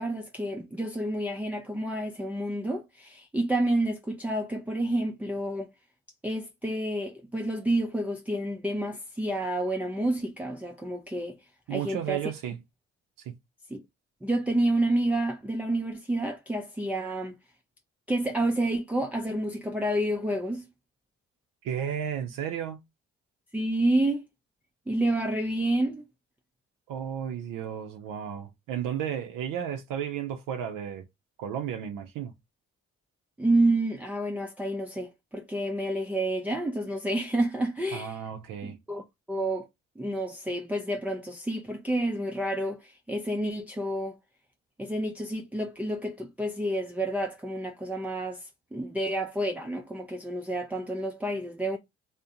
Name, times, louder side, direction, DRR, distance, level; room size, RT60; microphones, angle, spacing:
voice 1, 0.0-5.7 6.2-11.4 11.7-12.2 13.7-13.8 14.2-17.3 18.1-20.6 23.5-24.3 24.9-26.0 33.4-38.2 38.6-39.0 39.3-39.7 40.0-44.2 44.8-51.8, right 1 dB, 5° right, 0.3 m, -29 dB
voice 2, 11.7-12.6 13.3-13.4 21.6-22.8 26.9-31.0 31.4-32.3 37.9-38.8, right 9 dB, 70° right, 0.5 m, -33 dB
2.5 x 2.0 x 2.7 m
supercardioid pair, 50°, 34 cm